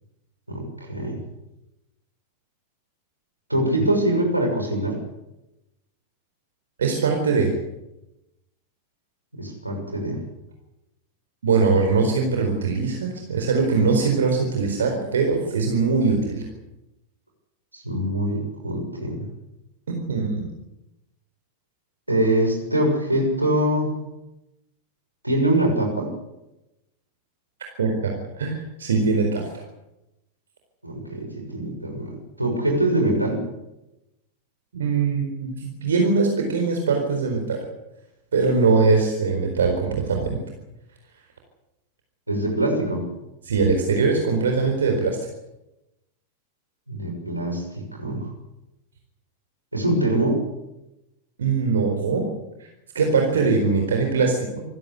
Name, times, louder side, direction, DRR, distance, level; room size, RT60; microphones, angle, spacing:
voice 1, 0.5-1.2 3.5-5.0 9.3-10.2 17.7-19.2 22.1-24.0 25.2-26.1 30.8-32.1 32.4-33.4 42.3-43.0 46.9-48.3 49.7-50.4, right 1 dB, 85° right, 2 dB, 6.5 m, -23 dB
voice 2, 6.8-7.5 11.4-16.4 20.1-20.4 27.8-29.5 34.7-37.6 38.3-40.4 43.4-45.2 51.4-52.2 52.6-52.7 52.9-54.6, right 4 dB, 65° right, 3 dB, 4.4 m, -21 dB
27.0 x 16.0 x 8.4 m, 0.94 s
figure-of-eight pair, 90°, 0 cm